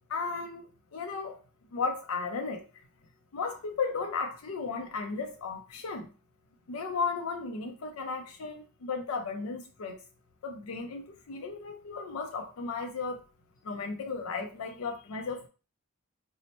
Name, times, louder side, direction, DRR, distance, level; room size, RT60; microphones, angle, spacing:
voice 1, 0.1-0.7 0.9-1.4 1.7-2.6 3.3-6.1 6.7-10.0 10.4-13.2 13.6-15.5, left 4 dB, 75° left, 0.4 m, -35 dB
4.0 x 2.0 x 2.9 m
head